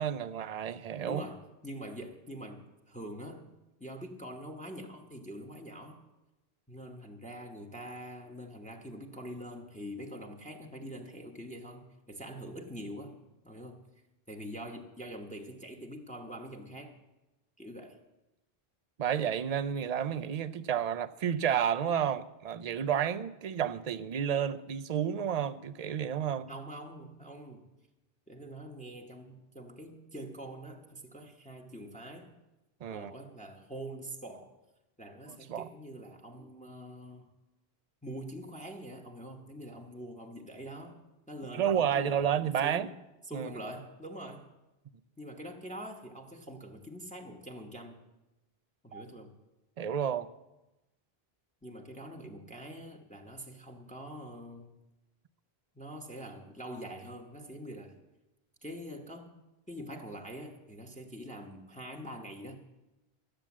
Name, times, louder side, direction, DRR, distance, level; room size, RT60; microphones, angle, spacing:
voice 1, 0.0-1.2 19.0-26.5 32.8-33.1 35.3-35.7 41.5-42.9 43.3-43.5 48.9-49.0 49.8-50.3, right 8 dB, 50° right, 0.6 m, -31 dB
voice 2, 1.0-3.5 3.8-6.0 6.7-13.2 13.4-13.9 14.3-17.0 17.6-18.0 26.5-27.7 28.3-32.3 32.9-34.5 35.0-37.3 38.0-41.0 41.3-42.9 43.3-44.5 45.2-48.0 48.8-49.4 51.6-54.8 55.7-58.0 58.6-59.3 59.7-62.5, equal, 5° left, 1.1 m, -44 dB
13.0 x 8.8 x 7.3 m
omnidirectional pair, 1.0 m